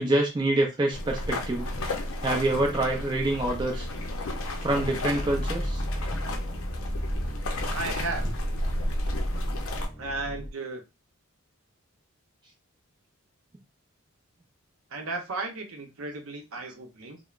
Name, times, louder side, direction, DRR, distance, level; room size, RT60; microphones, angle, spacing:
voice 1, 0.0-1.7 2.2-3.9 4.6-5.8, right 2 dB, 20° right, 0 dB, 0.4 m, -26 dB
sound 1, 0.9-9.9, left 1 dB, 65° left, 0.5 m, -32 dB
sound 2, 5.2-10.5, equal, ahead, 0.7 m, -34 dB
voice 2, 7.7-8.3 10.0-10.8 14.9-17.2, right 3 dB, 70° right, 3 dB, 0.7 m, -34 dB
3.1 x 2.0 x 2.4 m, 0.26 s
head